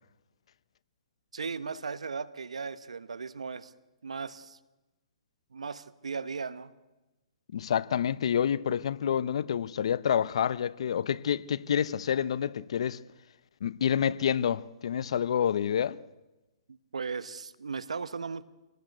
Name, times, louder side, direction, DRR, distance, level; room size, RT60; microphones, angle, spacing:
voice 1, 1.3-3.7 4.0-4.6 5.5-6.7 16.9-18.4, right 5 dB, 90° right, 1.3 m, -37 dB
voice 2, 7.5-13.0 13.6-16.0, left 8 dB, 65° left, 0.8 m, -28 dB
26.5 x 18.5 x 8.0 m
hypercardioid pair, 145°, 3 cm